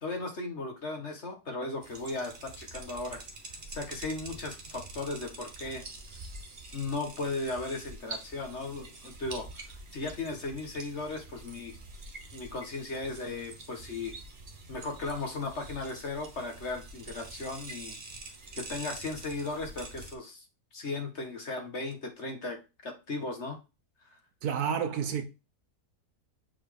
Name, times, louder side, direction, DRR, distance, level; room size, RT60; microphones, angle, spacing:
voice 1, 0.0-3.2 3.7-5.8 6.7-9.6 9.9-11.7 12.3-14.1 14.7-18.0 18.6-20.4 20.7-23.6 24.1-24.2, left 3 dB, 45° left, 1.7 m, -36 dB
sound 1, 1.8-20.1, right 2 dB, 40° right, 1.4 m, -46 dB
voice 2, 24.4-25.2, right 7 dB, 70° right, 1.2 m, -30 dB
7.6 x 4.4 x 3.4 m
omnidirectional pair, 1.8 m